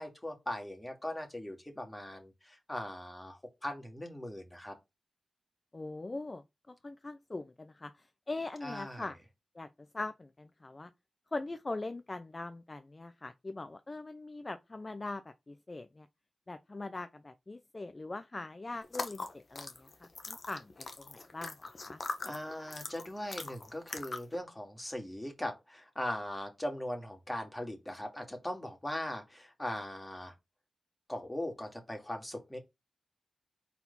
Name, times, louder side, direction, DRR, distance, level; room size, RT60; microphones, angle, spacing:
voice 1, 0.0-4.8 8.6-9.1 22.2-30.3 31.1-32.6, left 1 dB, 15° left, 2.5 m, -40 dB
voice 2, 5.7-6.4 6.8-7.9 8.3-9.2 9.6-9.7 9.9-10.9 11.3-15.2 15.5-16.1 16.5-22.0, left 2 dB, 35° left, 0.6 m, -41 dB
sound 1, 18.8-24.4, left 3 dB, 55° left, 1.2 m, -42 dB
4.3 x 4.2 x 5.5 m
cardioid pair, 55°, 0 cm